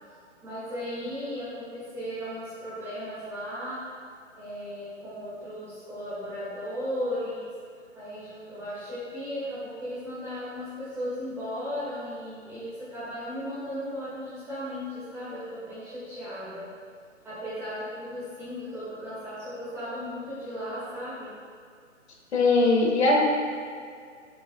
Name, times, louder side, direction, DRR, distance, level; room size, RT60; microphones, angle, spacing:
voice 1, 0.4-3.9 4.4-7.5 7.9-16.7 17.2-21.3, equal, 5° right, -13 dB, 1.6 m, -36 dB
voice 2, 22.3-23.2, left 2 dB, 60° left, -1 dB, 1.8 m, -20 dB
10.5 x 7.0 x 2.3 m, 2.2 s
hypercardioid pair, 150°, 38 cm